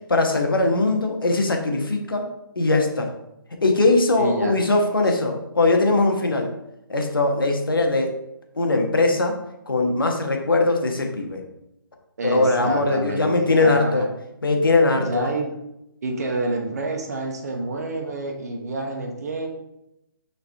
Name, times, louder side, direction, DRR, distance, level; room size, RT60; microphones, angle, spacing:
voice 1, 0.1-2.2 2.5-3.1 3.6-6.5 6.9-8.2 8.6-9.4 9.7-11.4 12.2-14.1 14.4-15.3, left 2 dB, 70° left, 3 dB, 1.3 m, -20 dB
voice 2, 4.2-4.6 12.2-14.1 15.0-15.6 16.0-19.5, right 2 dB, 45° right, 3 dB, 1.0 m, -28 dB
6.9 x 4.1 x 3.5 m, 0.86 s
figure-of-eight pair, 140°, 12 cm